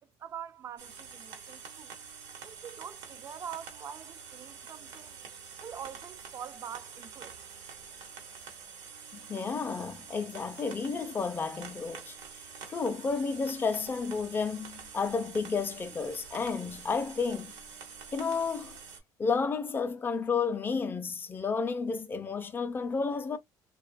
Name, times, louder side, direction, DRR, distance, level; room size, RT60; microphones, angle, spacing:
voice 1, 0.2-1.9 2.4-5.2 5.6-7.4, right 8 dB, 35° right, 0.3 m, -44 dB
sound 1, 0.8-19.0, right 6 dB, 90° right, 0.9 m, -47 dB
voice 2, 9.1-17.5 18.1-18.8 19.2-23.4, left 5 dB, 25° left, 0.5 m, -32 dB
2.4 x 2.2 x 2.5 m
cardioid pair, 110°, 9 cm